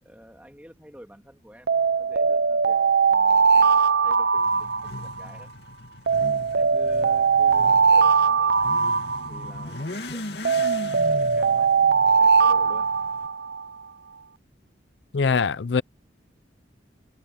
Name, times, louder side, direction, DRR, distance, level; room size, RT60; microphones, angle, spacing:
voice 1, 0.0-2.8 3.1-5.5 6.5-8.6 9.3-10.5 11.1-11.7 12.0-12.9, equal, 10° right, 2.8 m, -49 dB
Alarm, 1.7-5.4 6.1-9.8 10.4-13.7, right 5 dB, 65° right, 0.5 m, -20 dB
Motorcycle / Accelerating revving vroom, 4.4-13.3, left 2 dB, 65° left, 2.3 m, -38 dB
voice 2, 15.1-15.8, left 5 dB, 85° left, 0.5 m, -22 dB
head